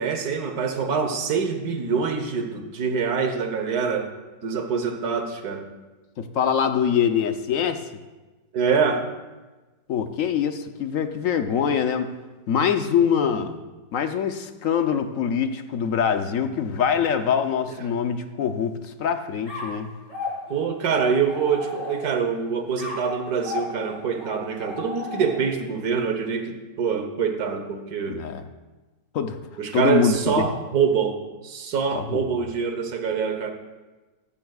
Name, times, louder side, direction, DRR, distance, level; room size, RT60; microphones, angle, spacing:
voice 1, 0.0-4.1 4.4-5.7 8.5-9.1 17.7-17.8 20.5-28.2 29.6-31.2 31.4-33.5, right 6 dB, 60° right, 6 dB, 1.6 m, -25 dB
voice 2, 6.2-7.8 9.9-12.1 12.5-13.6 13.9-19.9 28.1-28.4 29.1-29.4 29.7-30.4 31.9-32.3, left 7 dB, 60° left, 8 dB, 0.9 m, -24 dB
sound 1, 19.5-22.3 22.8-25.6, left 3 dB, 35° left, 3.0 m, -35 dB
14.5 x 14.5 x 2.4 m, 1.2 s
omnidirectional pair, 1.9 m